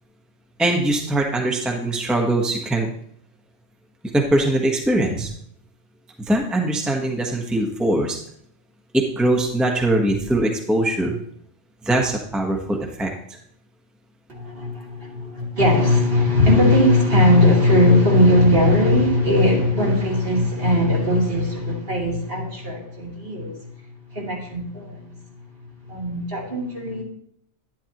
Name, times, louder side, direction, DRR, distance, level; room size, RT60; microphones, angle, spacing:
voice 1, 0.6-2.9 4.1-5.3 6.3-8.2 8.9-11.2 11.8-13.1, right 1 dB, ahead, 1.0 m, -21 dB
voice 2, 14.3-23.7 24.1-25.1 25.9-27.0, left 1 dB, 50° right, 2.9 m, -19 dB
11.0 x 10.5 x 2.9 m
omnidirectional pair, 1.2 m